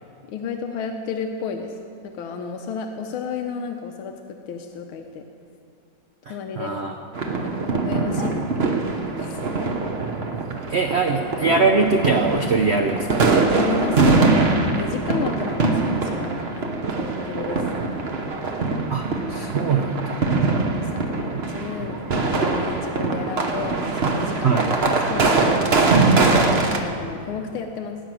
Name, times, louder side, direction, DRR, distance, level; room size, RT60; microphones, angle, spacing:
voice 1, 0.3-1.7 2.0-5.2 6.3-6.7 7.4-9.4 13.6-18.5 20.5-24.6 25.1-28.0, left 5 dB, 90° left, 4 dB, 1.7 m, -32 dB
voice 2, 6.3-6.9 10.0-13.2 18.9-19.0 19.3-20.2 24.4-24.7, right 4 dB, 75° right, 3 dB, 0.6 m, -22 dB
sound 1, 7.2-26.8, right 3 dB, 40° right, 1.0 m, -22 dB
18.0 x 6.3 x 9.0 m, 2.5 s
omnidirectional pair, 2.2 m